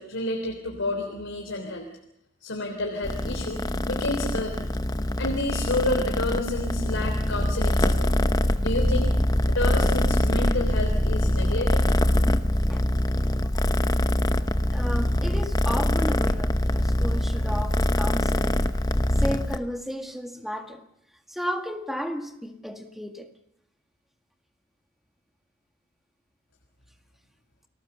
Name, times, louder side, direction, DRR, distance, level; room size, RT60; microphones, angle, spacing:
voice 1, 0.0-1.9 2.4-4.7 5.2-8.1 8.6-9.1 9.5-11.9, left 2 dB, 80° left, 2 dB, 3.5 m, -30 dB
Purr, 3.0-19.6, left 1 dB, 20° left, 0.8 m, -24 dB
voice 2, 12.7-13.7 14.7-18.7 19.2-20.8 21.3-23.3, equal, ahead, 5 dB, 1.9 m, -34 dB
30.0 x 19.5 x 6.9 m, 0.77 s
head